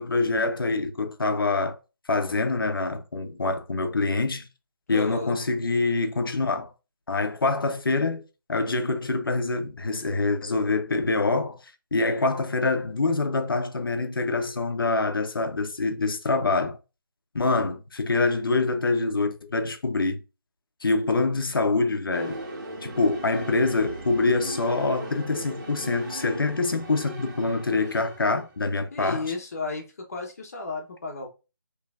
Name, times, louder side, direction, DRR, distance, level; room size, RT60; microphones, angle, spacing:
voice 1, 0.0-1.8 2.1-4.5 4.9-6.7 7.1-8.2 8.5-11.6 11.9-16.8 17.3-20.2 20.8-22.4 22.8-29.3, left 3 dB, 70° left, 0.8 m, -25 dB
voice 2, 4.9-5.4 28.9-31.3, left 3 dB, 40° left, 1.0 m, -33 dB
sound 1, 22.1-28.7, right 1 dB, 50° right, 1.7 m, -38 dB
5.8 x 3.1 x 2.4 m
figure-of-eight pair, 165°, 12 cm